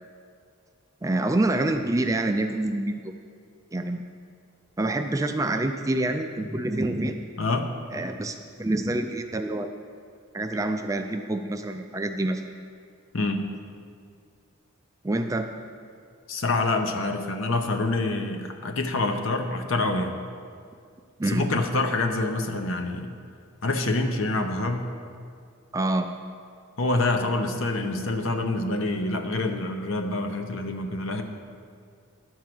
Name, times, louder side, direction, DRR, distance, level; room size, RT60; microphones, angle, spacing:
voice 1, 1.0-3.1 3.7-4.0 4.8-7.2 7.9-9.7 10.3-12.4 15.0-15.5 21.2-21.5 25.7-26.1, right 2 dB, 15° right, 6 dB, 0.3 m, -27 dB
voice 2, 7.4-7.7 13.1-13.4 16.3-20.2 21.3-23.2 23.6-24.9 26.8-31.2, left 2 dB, 65° left, 6 dB, 0.8 m, -26 dB
11.5 x 4.6 x 7.7 m, 2.2 s
head